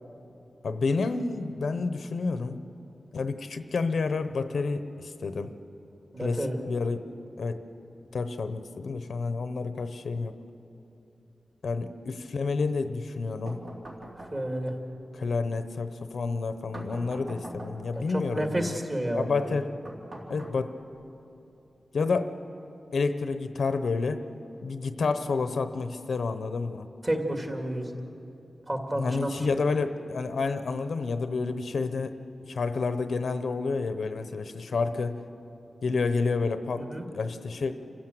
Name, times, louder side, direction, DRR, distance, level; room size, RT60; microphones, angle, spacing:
voice 1, 0.6-2.6 3.1-5.5 6.2-7.0 7.4-7.6 8.1-10.3 11.6-13.7 15.1-18.8 19.1-19.7 20.3-20.8 21.9-22.3 22.9-24.3 24.6-26.9 29.0-32.2 32.5-35.2 35.8-37.7, left 4 dB, 70° left, 9 dB, 0.9 m, -29 dB
voice 2, 6.1-6.6 14.3-14.8 17.9-19.5 27.0-27.9 28.7-29.3 36.8-37.0, right 1 dB, 25° right, 2 dB, 2.3 m, -30 dB
sound 1, 13.5-14.7 16.7-18.0 19.8-21.0, right 1 dB, 45° right, 3.6 m, -43 dB
28.0 x 15.0 x 7.9 m, 2.8 s
wide cardioid pair, 165°, 0 cm